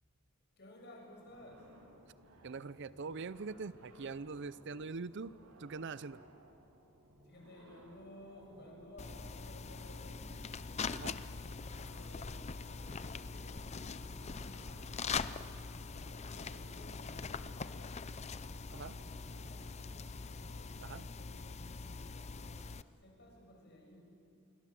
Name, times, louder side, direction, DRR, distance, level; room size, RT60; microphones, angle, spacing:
voice 1, 0.6-1.7 7.2-10.1 10.7-11.2 11.8-14.8 15.9-18.0 18.4-20.1 20.5-22.7 23.0-24.3, left 1 dB, 50° left, 0 dB, 7.0 m, -57 dB
sound 1, 1.2-20.7, right 1 dB, 85° right, 3.2 m, -61 dB
voice 2, 2.4-6.2 10.9-11.2 18.7-19.0 20.8-21.1, right 4 dB, 55° right, 17 dB, 0.5 m, -43 dB
sound 2, 9.0-22.8, left 5 dB, 30° left, 0.6 m, -43 dB
27.5 x 23.0 x 7.6 m, 2.6 s
head